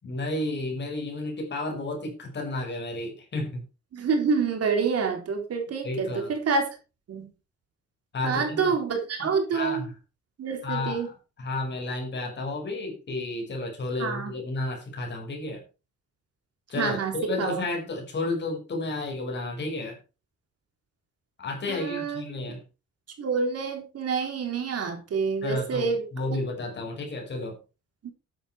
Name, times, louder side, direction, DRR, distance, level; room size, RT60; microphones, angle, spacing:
voice 1, 0.0-3.6 5.8-6.3 8.1-8.7 9.2-9.9 10.6-15.6 16.7-20.0 21.4-22.6 25.4-27.6, left 2 dB, 40° left, 5.9 m, -32 dB
voice 2, 3.9-6.7 7.1-7.3 8.2-9.8 10.4-11.1 14.0-14.3 16.8-17.6 21.7-22.2 23.2-26.0 28.0-28.1, right 5 dB, 55° right, 3.9 m, -27 dB
13.0 x 10.0 x 4.6 m
wide cardioid pair, 175°, 29 cm